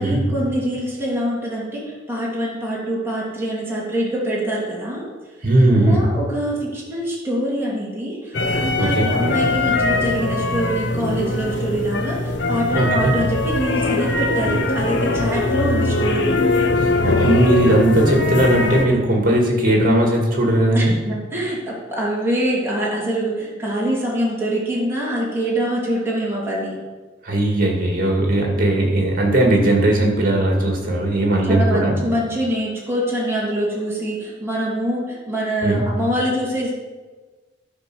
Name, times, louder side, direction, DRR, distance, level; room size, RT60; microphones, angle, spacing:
voice 1, 0.0-1.8 2.1-5.1 5.7-16.3 20.7-26.8 31.5-36.7, right 1 dB, 15° right, -6 dB, 2.8 m, -24 dB
voice 2, 5.4-6.1 8.8-9.1 12.7-13.1 16.8-20.9 27.2-31.9 35.6-35.8, right 1 dB, 50° right, 0 dB, 2.3 m, -18 dB
sound 1, 8.3-18.9, left 2 dB, 65° left, 1.0 m, -21 dB
11.5 x 5.3 x 6.2 m, 1.3 s
head